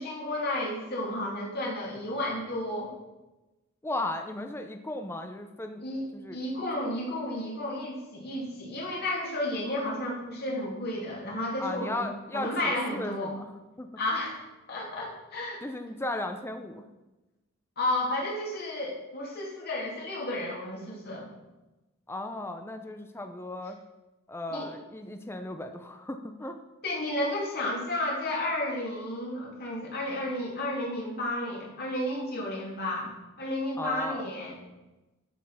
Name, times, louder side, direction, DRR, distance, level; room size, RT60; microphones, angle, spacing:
voice 1, 0.0-2.9 5.8-12.1 12.3-13.3 14.0-14.4 14.7-15.6 17.8-21.3 24.5-24.7 26.8-33.1 33.4-34.6, left 1 dB, 45° left, -3 dB, 2.9 m, -32 dB
voice 2, 3.8-5.8 6.1-6.4 11.6-13.5 13.8-13.9 15.6-16.8 22.1-23.8 24.3-26.6 33.8-34.3, left 2 dB, 10° left, 6 dB, 0.6 m, -36 dB
12.0 x 5.4 x 5.7 m, 1.1 s
head